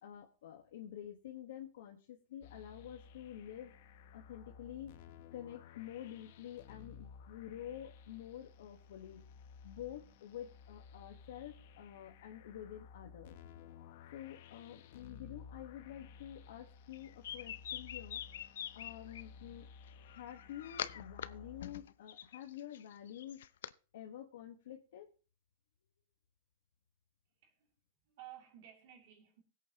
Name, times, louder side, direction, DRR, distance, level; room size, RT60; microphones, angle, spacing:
voice 1, 0.0-3.7 4.1-5.0 5.3-9.2 9.6-13.4 14.1-19.7 20.0-23.4 23.9-25.1, left 11 dB, 65° left, 1.4 m, -49 dB
sound 1, 2.4-21.8, left 6 dB, 50° left, 0.9 m, -56 dB
sound 2, 16.9-19.2 20.1-21.3 21.6-23.7, left 10 dB, 80° left, 0.6 m, -44 dB
voice 2, 27.4-27.7 28.0-29.4, right 12 dB, 50° right, 2.8 m, -55 dB
19.5 x 8.4 x 3.0 m
supercardioid pair, 170°, 0 cm